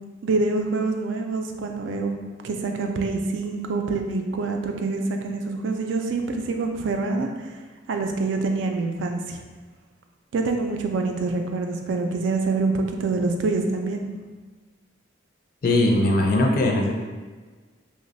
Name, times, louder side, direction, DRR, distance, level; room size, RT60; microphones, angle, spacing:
voice 1, 0.2-2.1 2.4-7.5 7.9-9.4 10.3-14.1, right 3 dB, 75° right, 4 dB, 0.4 m, -26 dB
voice 2, 15.6-17.0, left 1 dB, 50° left, 1 dB, 0.4 m, -20 dB
3.0 x 2.1 x 3.9 m, 1.4 s
head